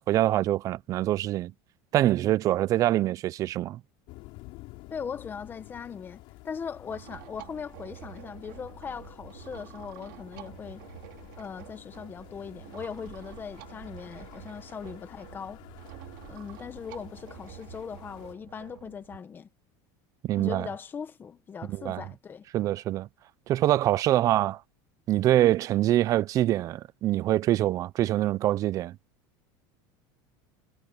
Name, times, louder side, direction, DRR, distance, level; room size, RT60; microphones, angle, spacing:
voice 1, 0.0-1.5 1.9-3.8 20.2-20.7 21.7-22.0 22.5-23.1 23.5-24.6 25.1-29.0, right 14 dB, 35° right, 0.4 m, -24 dB
sound 1, 4.1-18.3, left 22 dB, 55° left, 4.9 m, -50 dB
voice 2, 4.9-10.8 11.4-15.6 16.3-19.5 20.4-22.5, left 6 dB, 20° left, 1.2 m, -39 dB
sound 2, 6.9-19.2, right 20 dB, 80° right, 2.7 m, -48 dB
cardioid pair, 160°, 10 cm